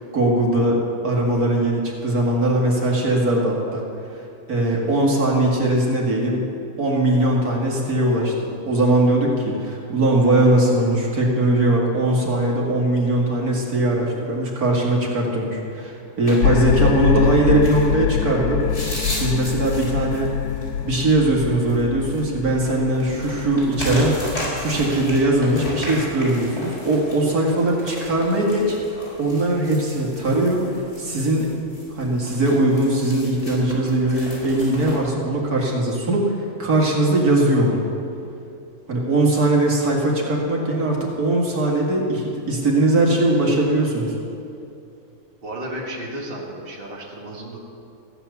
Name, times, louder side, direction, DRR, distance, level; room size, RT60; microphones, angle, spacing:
voice 1, 0.0-3.8 4.5-6.5 6.8-18.6 19.1-20.4 20.8-28.8 29.2-31.5 31.9-37.8 38.9-44.1, right 1 dB, 80° right, -2 dB, 2.6 m, -20 dB
sound 1, 16.2-35.0, left 1 dB, 50° left, 4.7 m, -35 dB
sound 2, 16.4-25.8, left 8 dB, 85° left, 1.1 m, -25 dB
voice 2, 45.4-47.6, right 1 dB, 40° right, -2 dB, 2.0 m, -33 dB
15.0 x 9.1 x 7.0 m, 2.6 s
omnidirectional pair, 1.6 m